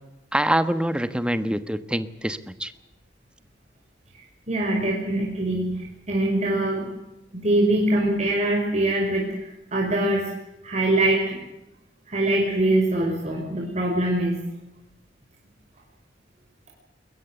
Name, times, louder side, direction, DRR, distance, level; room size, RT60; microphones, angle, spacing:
voice 1, 0.3-2.7, right 1 dB, 5° right, 12 dB, 1.3 m, -25 dB
voice 2, 4.5-6.9 7.3-9.3 9.7-10.3 10.6-11.4 12.1-14.4, right 1 dB, 40° right, -2 dB, 5.4 m, -23 dB
22.0 x 21.0 x 8.0 m, 0.92 s
head